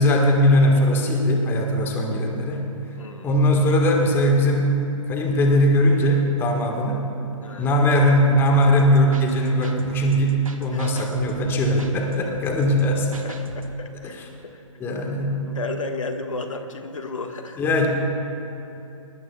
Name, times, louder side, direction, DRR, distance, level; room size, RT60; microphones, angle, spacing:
voice 1, 0.0-2.7 3.2-4.8 5.1-7.1 7.6-13.1 14.8-15.4 17.6-17.9, equal, 10° left, 2 dB, 1.5 m, -20 dB
voice 2, 3.0-3.3 7.4-7.7 10.7-10.8 11.7-11.8 13.2-14.6 15.5-17.6, left 3 dB, 70° left, 5 dB, 1.6 m, -33 dB
sound 1, 8.5-13.8, right 2 dB, 75° right, 1.6 m, -39 dB
23.5 x 20.0 x 2.3 m, 3.0 s
figure-of-eight pair, 135°, 18 cm